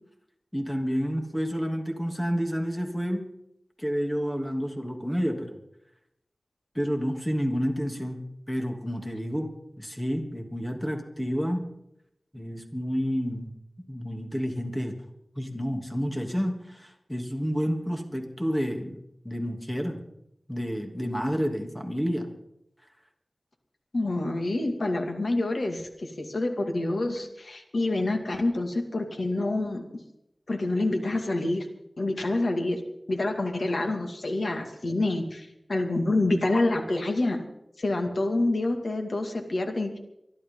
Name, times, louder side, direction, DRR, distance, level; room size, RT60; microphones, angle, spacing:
voice 1, 0.5-3.2 3.8-5.6 6.7-8.2 8.5-9.5 9.8-11.6 12.3-13.5 13.9-14.9 15.4-19.0 19.2-20.0 20.5-22.3, equal, 10° left, 2 dB, 2.8 m, -29 dB
voice 2, 23.9-29.9 30.5-31.7 32.0-32.8 33.1-37.5 37.8-40.0, left 2 dB, 75° left, 4 dB, 2.2 m, -27 dB
24.5 x 12.0 x 3.9 m, 0.82 s
wide cardioid pair, 60°, 0 cm